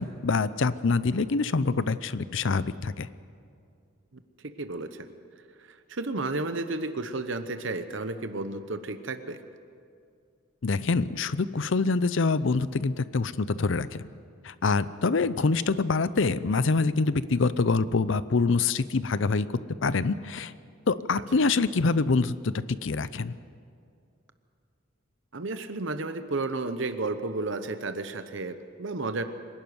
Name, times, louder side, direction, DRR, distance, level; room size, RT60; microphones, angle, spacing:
voice 1, 0.0-3.1 10.6-13.9 14.4-19.5 19.8-20.5 20.9-23.3, left 4 dB, 60° left, 15 dB, 0.6 m, -25 dB
voice 2, 4.4-5.1 5.6-9.4 21.1-21.2 25.3-29.2, right 3 dB, 60° right, 10 dB, 0.9 m, -32 dB
25.5 x 11.5 x 9.5 m, 2.3 s
head